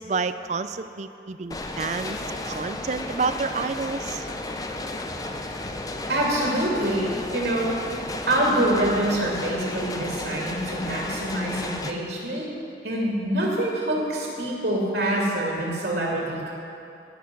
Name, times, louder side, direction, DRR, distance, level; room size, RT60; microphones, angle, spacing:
voice 1, 0.0-2.2 2.4-4.2, right 4 dB, 40° right, 11 dB, 0.4 m, -29 dB
sound 1, 1.5-11.9, left 2 dB, 20° left, 0.6 m, -33 dB
voice 2, 6.1-7.8 8.3-12.5 12.8-16.5, right 1 dB, 75° right, -3 dB, 2.4 m, -25 dB
17.5 x 6.7 x 6.0 m, 2.7 s
head